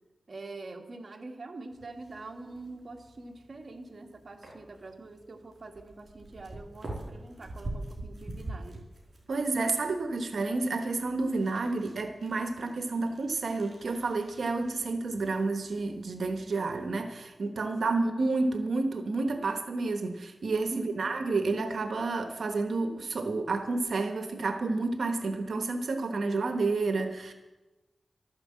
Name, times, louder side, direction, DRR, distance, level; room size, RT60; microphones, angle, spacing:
voice 1, 0.3-8.8 20.7-21.1, right 3 dB, 55° right, 4 dB, 1.8 m, -44 dB
sound 1, 1.7-17.0, right 2 dB, 40° right, 5.0 m, -46 dB
voice 2, 9.3-27.3, right 3 dB, 80° right, 7 dB, 1.1 m, -30 dB
12.5 x 9.5 x 7.6 m, 1.1 s
wide cardioid pair, 70°, 0 cm